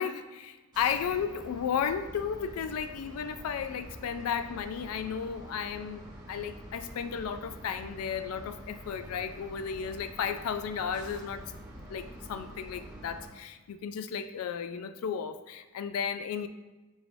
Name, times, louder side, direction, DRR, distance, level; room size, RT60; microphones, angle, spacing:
voice 1, 0.0-11.5 11.9-16.5, left 7 dB, 85° left, 10 dB, 0.3 m, -34 dB
sound 1, 0.7-13.3, right 1 dB, 20° right, 1.0 m, -47 dB
5.5 x 3.1 x 2.6 m, 1.2 s
head